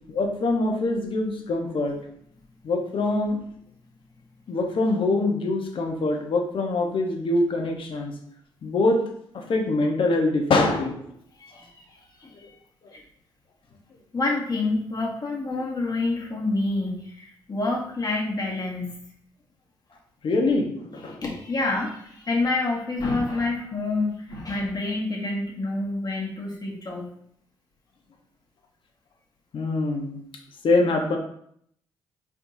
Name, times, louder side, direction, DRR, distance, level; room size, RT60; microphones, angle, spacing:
voice 1, 0.1-2.0 2.6-3.4 4.5-8.1 8.6-9.0 9.3-11.0 20.2-21.2 29.5-30.2 30.6-31.2, left 2 dB, 55° left, 2 dB, 1.0 m, -24 dB
voice 2, 11.4-12.3 12.9-13.0 14.1-19.0 21.2-27.1, left 2 dB, 40° left, -2 dB, 1.5 m, -28 dB
4.4 x 3.6 x 2.7 m, 0.67 s
supercardioid pair, 55°, 10 cm